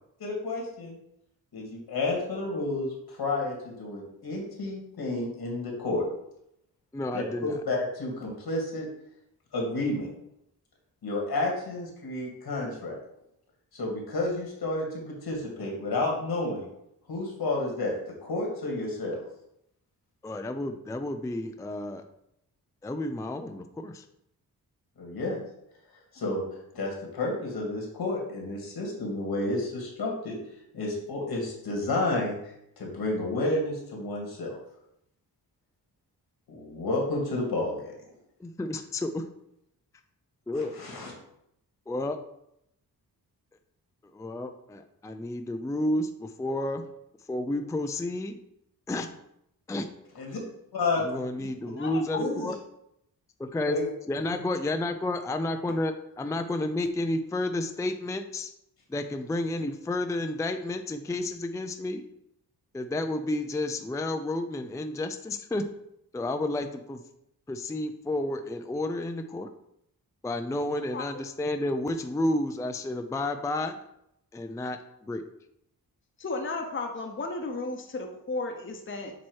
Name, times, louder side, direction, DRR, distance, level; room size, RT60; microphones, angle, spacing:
voice 1, 0.2-1.0 1.5-6.1 7.1-8.9 9.5-10.1 11.0-13.0 13.7-16.7 17.1-17.9 18.2-19.2 25.0-25.4 26.1-26.4 26.7-30.4 30.7-32.4 32.8-34.6 36.5-37.9 40.8-41.1 50.1-50.4 50.7-51.1 51.6-51.7 52.2-52.5 53.7-53.8, left 2 dB, 80° left, -1 dB, 2.2 m, -31 dB
voice 2, 6.9-7.6 20.2-22.0 22.8-24.0 38.4-39.3 40.5-40.7 41.9-42.2 44.1-46.8 47.3-48.4 48.9-49.1 49.7-49.9 51.0-52.6 53.5-53.8 54.1-58.5 58.9-62.0 62.7-65.6 66.1-67.0 67.5-69.5 70.2-73.8 74.3-75.2, left 1 dB, 10° left, 7 dB, 0.4 m, -31 dB
voice 3, 51.7-52.0 70.9-71.1 76.2-79.1, left 3 dB, 30° left, 3 dB, 0.9 m, -34 dB
7.4 x 3.0 x 4.6 m, 0.78 s
cardioid pair, 75°, 37 cm